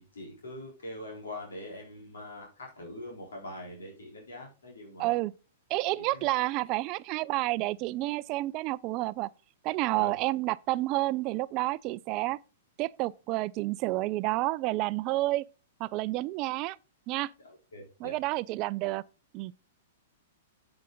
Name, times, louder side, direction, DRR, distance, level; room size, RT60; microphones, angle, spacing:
voice 1, 0.0-5.2 6.0-6.3 9.9-10.1 17.4-18.2, left 1 dB, 85° left, 3.8 m, -43 dB
voice 2, 5.0-5.3 5.7-9.3 9.6-12.4 12.8-15.4 15.8-16.8 17.1-17.3 18.0-19.0 19.3-19.5, right 19 dB, 40° right, 0.4 m, -30 dB
8.3 x 7.6 x 3.8 m
hypercardioid pair, 115°, 0 cm